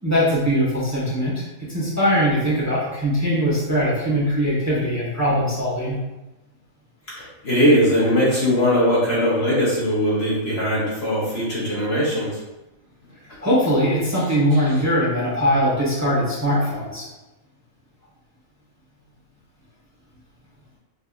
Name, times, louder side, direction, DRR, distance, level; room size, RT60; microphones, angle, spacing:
voice 1, 0.0-6.0 13.4-17.1, equal, 10° right, -8 dB, 1.3 m, -21 dB
voice 2, 7.2-12.4, equal, 50° left, -7 dB, 1.3 m, -20 dB
5.3 x 3.3 x 2.5 m, 1.0 s
omnidirectional pair, 1.5 m